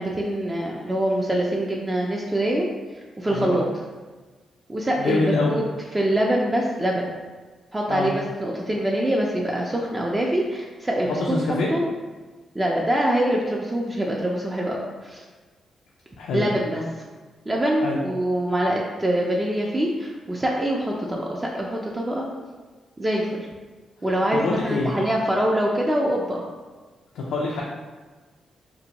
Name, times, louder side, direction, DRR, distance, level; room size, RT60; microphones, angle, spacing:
voice 1, 0.0-2.7 2.9-3.7 4.7-5.6 5.9-7.1 7.7-11.2 11.5-11.8 12.5-15.2 16.3-16.8 17.5-22.3 23.0-23.5 24.0-26.4, right 1 dB, 20° right, -2 dB, 0.3 m, -24 dB
voice 2, 5.0-5.6 7.9-8.1 11.0-11.7 16.2-16.4 17.8-18.0 24.3-25.0 27.1-27.6, left 3 dB, 90° left, -3 dB, 0.3 m, -25 dB
2.6 x 2.1 x 2.9 m, 1.3 s
cardioid pair, 85°, 0 cm